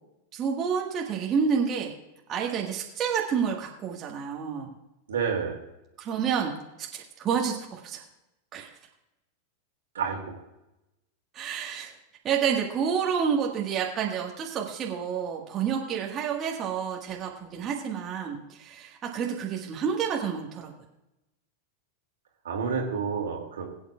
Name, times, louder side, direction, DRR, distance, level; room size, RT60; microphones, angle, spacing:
voice 1, 0.3-1.9 2.3-4.7 6.0-8.0 8.5-8.7 11.3-11.9 12.2-20.7, right 7 dB, 30° right, -1 dB, 1.6 m, -29 dB
voice 2, 5.1-5.6 9.9-10.4 22.4-23.6, right 6 dB, 65° right, 1 dB, 2.4 m, -29 dB
21.5 x 9.0 x 2.4 m, 0.92 s
figure-of-eight pair, 90°, 0 cm